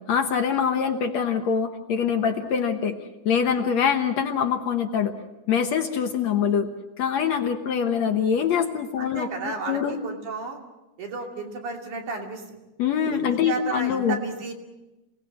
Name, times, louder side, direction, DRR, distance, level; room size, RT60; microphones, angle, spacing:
voice 1, 0.1-3.0 3.3-5.1 5.5-6.7 7.0-10.0 12.8-14.2, left 7 dB, 65° left, 5 dB, 2.1 m, -24 dB
voice 2, 9.0-10.6 11.0-12.4 13.1-14.5, right 4 dB, 65° right, 1 dB, 4.2 m, -33 dB
27.5 x 18.5 x 7.5 m, 1.0 s
omnidirectional pair, 3.8 m